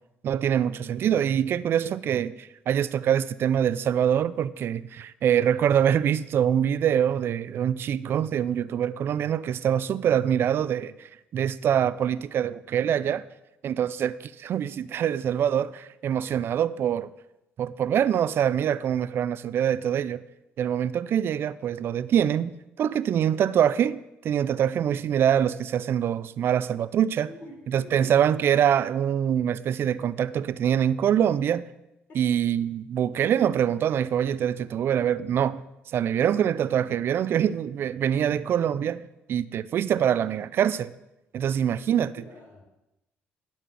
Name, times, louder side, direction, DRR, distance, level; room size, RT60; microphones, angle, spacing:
voice 1, 0.2-13.2 13.6-17.1 17.6-20.2 20.6-22.5 22.8-27.3 27.7-31.6 32.2-35.6 35.9-39.0 39.3-40.9 41.3-42.1, right 9 dB, 60° right, 0.4 m, -24 dB
voice 2, 27.2-28.2 32.1-32.4 41.4-42.6, left 2 dB, 50° left, 3.8 m, -48 dB
12.0 x 4.4 x 7.1 m
supercardioid pair, 80°, 4 cm